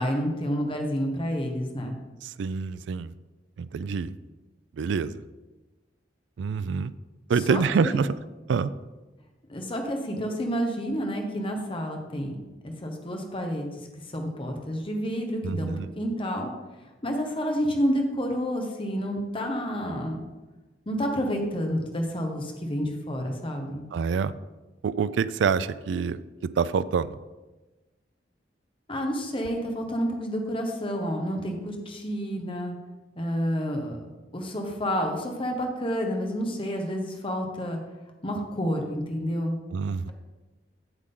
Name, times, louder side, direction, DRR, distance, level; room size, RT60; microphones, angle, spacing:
voice 1, 0.0-2.0 7.5-8.0 9.5-12.3 12.6-13.9 14.1-16.5 16.8-20.2 20.9-23.8 28.9-32.8 33.2-34.0 34.3-37.8 38.2-39.6, equal, 30° left, 3 dB, 1.2 m, -29 dB
voice 2, 2.2-3.1 3.6-4.1 4.8-5.2 6.4-6.9 7.3-8.1 8.5-8.7 15.4-15.9 23.9-24.3 24.8-26.2 26.6-27.2 39.7-40.1, right 5 dB, 85° right, 15 dB, 0.3 m, -26 dB
8.0 x 7.5 x 3.8 m, 1.1 s
head